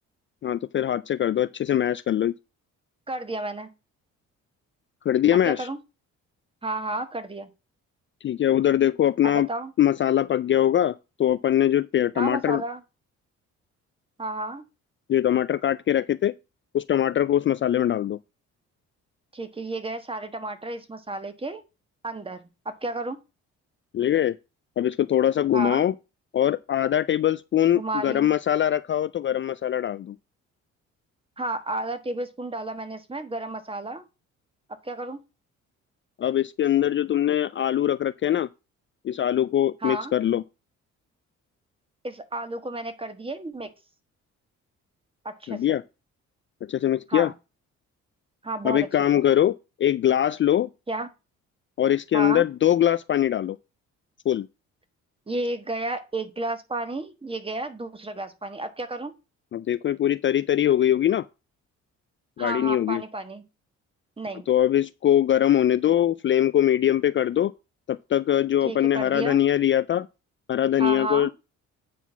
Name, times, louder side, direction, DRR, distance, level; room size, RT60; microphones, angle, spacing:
voice 1, 0.4-2.3 5.1-5.7 8.2-9.5 9.8-10.9 11.2-12.6 15.1-16.3 16.7-18.2 23.9-24.4 24.8-25.9 26.3-30.1 36.2-38.5 39.0-40.4 45.5-45.8 46.7-47.3 48.6-50.7 51.8-53.6 54.3-54.5 59.5-61.3 62.4-63.0 64.5-67.5 67.9-70.1 70.5-71.3, left 11 dB, 40° left, 0.4 m, -22 dB
voice 2, 3.1-3.7 5.4-5.8 6.6-7.5 9.2-9.7 12.1-12.8 14.2-14.6 19.3-21.6 22.0-23.2 25.5-25.8 27.7-28.3 31.4-34.1 34.8-35.2 39.8-40.1 42.0-43.7 45.2-45.8 47.1-47.3 48.4-48.9 50.9-51.1 52.1-52.4 55.3-59.1 62.4-63.4 64.2-64.5 68.6-69.4 70.8-71.3, right 2 dB, 20° right, 1.4 m, -32 dB
9.2 x 4.1 x 5.9 m
cardioid pair, 90°, 30 cm